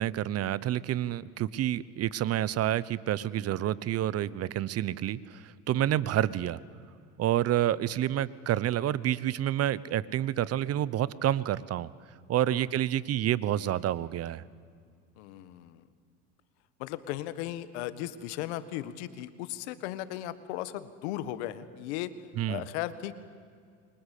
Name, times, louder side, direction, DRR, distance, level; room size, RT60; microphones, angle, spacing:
voice 1, 0.0-6.6 7.2-11.9 12.3-14.4 22.4-22.6, right 12 dB, 45° right, 19 dB, 1.0 m, -29 dB
voice 2, 15.2-15.8 16.8-22.1 22.5-23.1, left 13 dB, 85° left, 14 dB, 1.6 m, -37 dB
29.0 x 24.0 x 8.5 m, 2.2 s
supercardioid pair, 105°, 33 cm